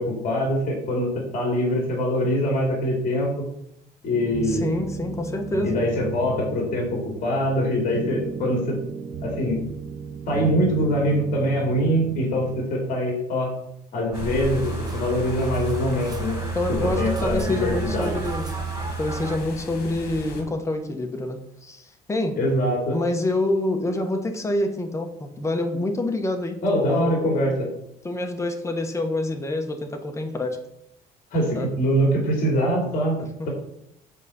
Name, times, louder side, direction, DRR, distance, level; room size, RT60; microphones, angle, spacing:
voice 1, 0.0-3.3 4.0-4.6 5.6-8.8 9.2-9.6 10.3-13.5 13.9-16.4 16.7-18.1 22.4-23.0 26.6-27.7 31.3-33.2, equal, 55° left, 0 dB, 2.7 m, -23 dB
sound 1, 4.1-12.6, right 6 dB, 40° right, 0.9 m, -35 dB
voice 2, 4.5-5.8 11.3-11.5 15.8-16.0 16.5-18.5 19.0-22.4 22.9-27.2 28.0-30.6 31.5-31.7 33.2-33.5, left 1 dB, 15° left, 4 dB, 1.3 m, -27 dB
sound 2, 14.1-20.4, left 4 dB, 70° left, 2.1 m, -37 dB
sound 3, 14.1-19.4, right 5 dB, 25° right, 1.3 m, -30 dB
8.4 x 4.1 x 7.0 m, 0.76 s
cardioid pair, 110°, 17 cm